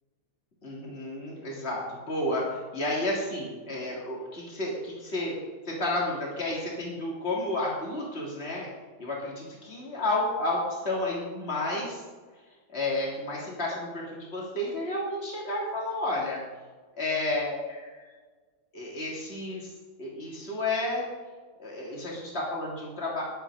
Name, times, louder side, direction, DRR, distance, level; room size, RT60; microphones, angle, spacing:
voice 1, 0.6-5.4 5.7-8.7 9.0-12.0 12.7-16.4 17.0-18.0 18.7-19.7 20.0-21.1 21.6-23.2, left 2 dB, 40° left, -4 dB, 3.6 m, -31 dB
22.0 x 8.5 x 5.1 m, 1.4 s
omnidirectional pair, 1.7 m